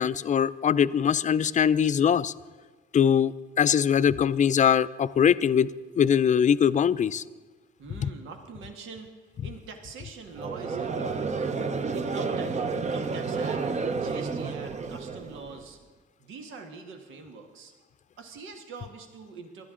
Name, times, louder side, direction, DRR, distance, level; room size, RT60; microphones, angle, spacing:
voice 1, 0.0-2.3 2.9-7.2 8.0-8.1, left 8 dB, 40° left, 15 dB, 0.4 m, -22 dB
voice 2, 7.8-11.4 11.9-13.6 13.9-15.8 16.2-17.7 18.2-19.7, right 4 dB, 80° right, 4 dB, 1.5 m, -44 dB
Conversation / Crowd, 10.3-15.6, right 4 dB, 35° right, 0.8 m, -30 dB
20.0 x 12.5 x 3.8 m, 1.3 s
cardioid pair, 90°, 20 cm